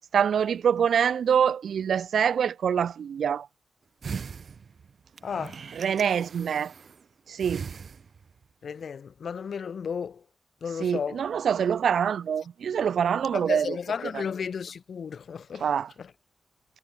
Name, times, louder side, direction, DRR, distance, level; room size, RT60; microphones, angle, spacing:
voice 1, 0.1-3.5 5.8-6.7 7.3-7.7 10.8-13.8 14.1-14.2 15.6-15.9, right 7 dB, 90° right, 0.5 m, -25 dB
sound 1, 4.0-7.0 7.4-8.4 8.8-8.9, right 6 dB, 60° right, 4.8 m, -40 dB
voice 2, 5.2-5.6 8.6-10.2 10.6-11.2 13.3-15.7 16.0-16.1, left 6 dB, 70° left, 4.6 m, -33 dB
wide cardioid pair, 105°, 0 cm